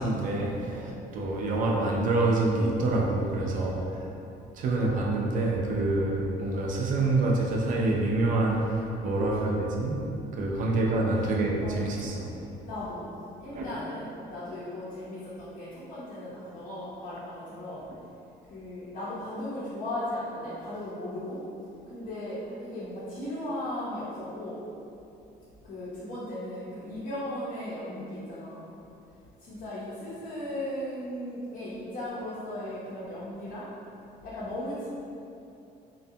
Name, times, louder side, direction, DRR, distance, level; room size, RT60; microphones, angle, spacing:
voice 1, 0.0-3.8 4.6-10.1 10.3-12.3 13.5-13.8, right 2 dB, 50° right, -1 dB, 0.4 m, -27 dB
voice 2, 3.6-3.9 9.4-9.5 11.6-11.9 12.7-13.0 13.4-17.8 18.5-21.4 21.9-24.6 25.6-28.7 29.4-33.7 34.2-34.9, left 1 dB, 55° left, -11 dB, 0.6 m, -37 dB
2.5 x 2.2 x 2.6 m, 2.7 s
cardioid pair, 110°, 17 cm